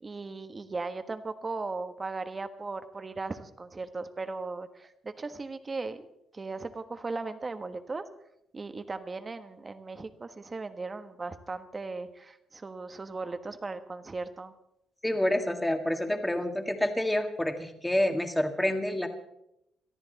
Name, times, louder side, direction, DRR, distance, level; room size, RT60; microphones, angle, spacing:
voice 1, 0.0-6.1 6.3-8.0 8.5-14.5, right 3 dB, 30° right, 10 dB, 1.3 m, -37 dB
voice 2, 15.0-19.1, left 1 dB, 10° left, 5 dB, 2.0 m, -28 dB
22.5 x 13.5 x 4.1 m, 0.81 s
cardioid pair, 90°, 0 cm